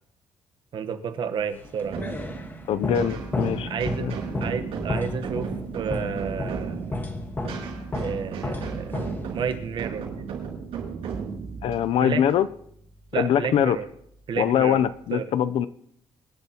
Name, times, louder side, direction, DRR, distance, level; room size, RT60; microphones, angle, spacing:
voice 1, 0.7-2.0 3.7-4.1 4.4-7.0 8.0-10.1 12.0-12.2 13.1-13.9 14.3-14.8 15.1-15.3, right 7 dB, 50° right, 8 dB, 1.1 m, -31 dB
sound 1, 1.6-9.7, left 2 dB, 20° left, 1.4 m, -33 dB
sound 2, 1.8-13.2, right 6 dB, 75° right, 6.0 m, -35 dB
voice 2, 2.7-3.7 4.0-4.1 11.6-12.5 13.2-13.8 14.4-15.7, left 9 dB, 65° left, 14 dB, 0.6 m, -23 dB
26.0 x 12.0 x 2.9 m, 0.72 s
cardioid pair, 155°, 10 cm